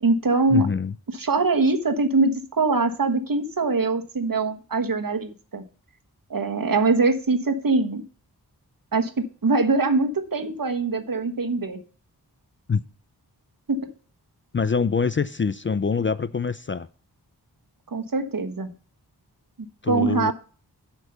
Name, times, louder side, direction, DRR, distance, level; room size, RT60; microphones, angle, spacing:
voice 1, 0.0-0.7 1.1-5.6 6.3-8.0 8.9-11.8 13.7-13.8 17.9-18.7 19.9-20.3, right 3 dB, 55° right, 1.3 m, -23 dB
voice 2, 0.5-0.9 12.7-12.8 14.5-16.9 19.8-20.3, left 5 dB, 30° left, 0.4 m, -24 dB
7.8 x 5.2 x 6.7 m
cardioid pair, 40°, 40 cm